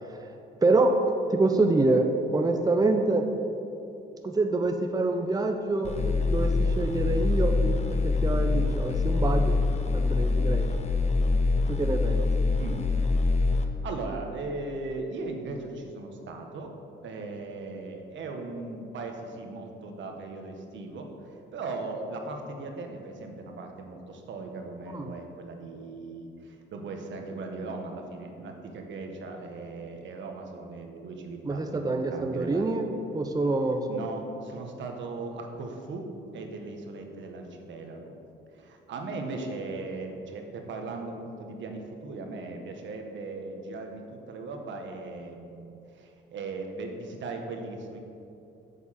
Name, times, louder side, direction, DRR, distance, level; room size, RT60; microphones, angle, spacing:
voice 1, 0.6-1.0 1.3-3.3 4.2-9.6 9.9-10.7 11.7-12.3 24.9-25.1 31.4-32.9 33.1-34.0, right 2 dB, 20° right, 5 dB, 0.8 m, -26 dB
sound 1, 5.8-13.6, left 3 dB, 35° left, 1.0 m, -25 dB
voice 2, 13.8-16.7 17.0-21.1 21.5-32.7 33.9-38.1 38.5-48.0, right 3 dB, 70° right, 3 dB, 1.5 m, -38 dB
8.1 x 7.4 x 7.6 m, 2.8 s
cardioid pair, 90°, 20 cm